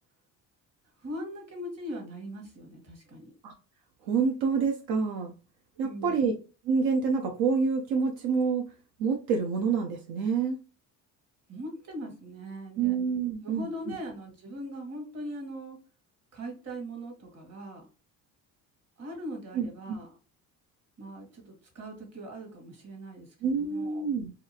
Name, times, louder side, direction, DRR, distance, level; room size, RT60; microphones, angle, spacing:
voice 1, 1.0-3.3 5.7-6.2 11.5-13.0 13.4-15.8 16.3-17.8 19.0-20.1 21.0-24.1, equal, 45° right, 2 dB, 1.4 m, -40 dB
voice 2, 4.1-5.3 5.8-6.3 6.6-8.7 9.0-10.6 12.8-13.7 19.5-20.0 23.4-24.3, right 5 dB, 75° right, 2 dB, 0.6 m, -27 dB
2.8 x 2.4 x 2.7 m, 0.34 s
cardioid pair, 100°, 37 cm